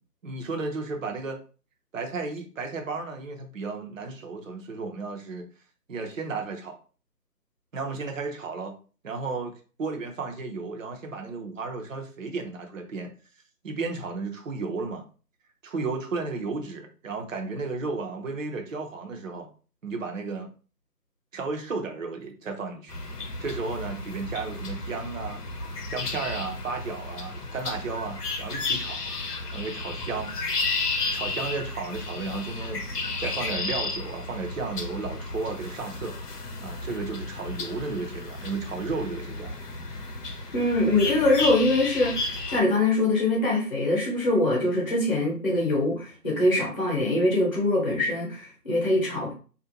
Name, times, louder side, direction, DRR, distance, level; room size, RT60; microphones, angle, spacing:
voice 1, 0.2-1.4 1.9-5.4 5.9-6.8 7.7-8.8 9.0-9.5 9.8-13.1 13.6-15.1 15.6-19.5 19.8-20.5 21.3-22.9 23.4-25.4 25.9-29.0 29.5-30.3 31.1-36.2 36.6-39.5, right 4 dB, 55° right, 3 dB, 0.6 m, -33 dB
sound 1, 22.9-42.6, left 3 dB, 70° left, 0.7 m, -33 dB
voice 2, 40.5-49.3, left 2 dB, 30° left, -3 dB, 0.8 m, -23 dB
2.5 x 2.1 x 2.7 m, 0.37 s
figure-of-eight pair, 165°, 48 cm